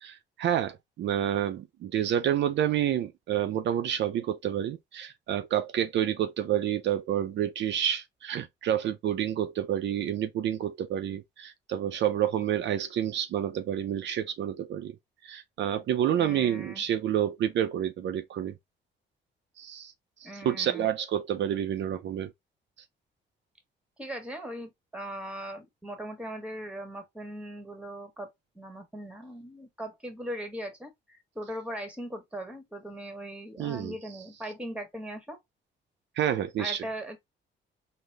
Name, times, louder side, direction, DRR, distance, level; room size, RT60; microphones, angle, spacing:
voice 1, 0.0-14.9 15.2-18.5 19.6-19.9 20.2-22.3 33.6-34.0 36.2-36.8, right 10 dB, 65° right, 0.5 m, -29 dB
voice 2, 16.2-16.8 20.2-20.9 24.0-35.4 36.6-37.2, right 1 dB, 5° right, 1.2 m, -39 dB
3.9 x 2.0 x 3.2 m
cardioid pair, 90°, 20 cm